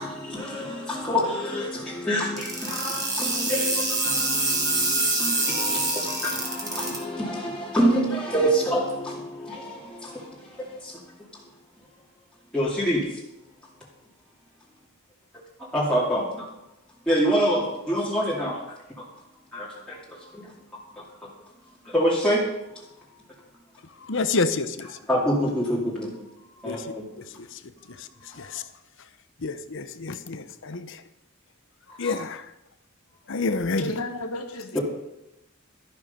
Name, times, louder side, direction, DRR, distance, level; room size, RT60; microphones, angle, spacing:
voice 1, 0.0-11.0 12.5-13.0 15.7-16.5 17.1-18.6 19.0-19.1 19.5-20.5 21.0-21.1 21.8-22.4 22.7-22.8 25.1-26.2 26.6-27.1 32.0-32.1 34.7-34.8, equal, 5° left, -7 dB, 2.4 m, -26 dB
sound 1, 2.4-7.0, right 2 dB, 20° right, 2.6 m, -25 dB
voice 2, 24.0-25.0 26.6-27.6 27.9-28.7 29.4-31.0 32.0-32.5 33.3-33.9, left 3 dB, 60° left, 12 dB, 0.8 m, -29 dB
voice 3, 33.8-34.8, left 1 dB, 85° left, 5 dB, 1.6 m, -32 dB
13.0 x 11.5 x 5.3 m, 0.90 s
head